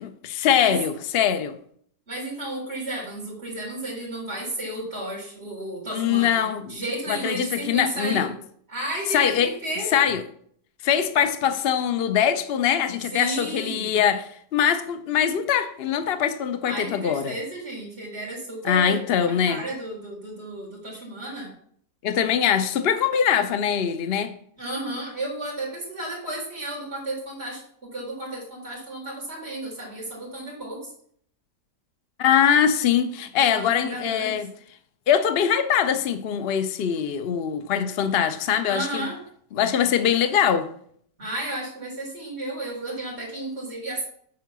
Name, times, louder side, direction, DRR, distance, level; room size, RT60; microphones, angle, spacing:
voice 1, 0.2-1.6 5.9-6.8 7.1-8.3 9.1-9.5 9.9-10.2 10.8-17.4 18.6-19.6 22.0-24.3 32.2-34.5 35.1-39.1 39.5-40.7, left 8 dB, 75° left, 0.5 m, -22 dB
voice 2, 2.1-8.3 8.7-9.3 9.6-10.0 13.1-14.0 16.7-21.5 24.6-30.9 33.4-34.5 38.6-39.2 41.2-44.0, right 1 dB, 35° right, 4.2 m, -33 dB
9.6 x 4.6 x 6.1 m
omnidirectional pair, 1.9 m